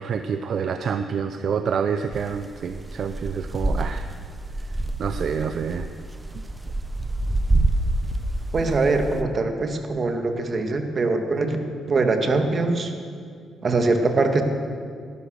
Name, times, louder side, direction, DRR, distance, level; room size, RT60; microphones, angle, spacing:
voice 1, 0.0-4.1 5.0-5.9 6.3-6.4, right 6 dB, 60° right, 9 dB, 0.7 m, -27 dB
sound 1, 2.1-9.2, right 2 dB, 15° right, 1.1 m, -27 dB
voice 2, 8.5-11.6 11.9-12.9 13.6-14.4, right 3 dB, 40° right, 5 dB, 2.0 m, -22 dB
18.0 x 12.0 x 6.6 m, 2.2 s
cardioid pair, 90°, 0 cm